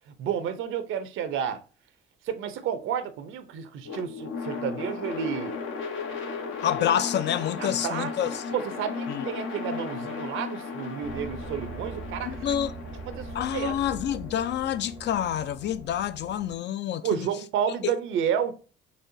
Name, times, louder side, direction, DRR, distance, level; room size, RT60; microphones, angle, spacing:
voice 1, 0.1-1.6 2.2-5.6 7.6-12.5 13.1-13.8 17.0-18.6, right 8 dB, 85° right, 0.6 m, -31 dB
sound 1, 3.8-16.0, left 5 dB, 80° left, 0.9 m, -36 dB
voice 2, 6.6-8.4 9.1-9.2 12.2-12.7 13.3-17.3 17.8-17.9, left 10 dB, 60° left, 0.4 m, -28 dB
sound 2, 11.0-16.6, right 5 dB, 40° right, 0.5 m, -42 dB
4.1 x 3.1 x 2.6 m
cardioid pair, 90°, 20 cm